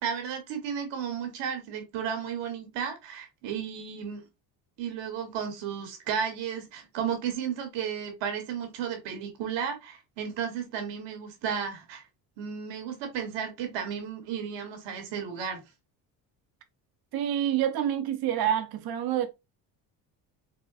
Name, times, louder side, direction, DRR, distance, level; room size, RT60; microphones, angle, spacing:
voice 1, 0.0-4.2 4.8-12.0 12.4-15.6, right 7 dB, 75° right, 1.3 m, -33 dB
voice 2, 17.1-19.3, right 10 dB, 55° right, 0.8 m, -27 dB
4.1 x 2.2 x 2.4 m
cardioid pair, 105°, 44 cm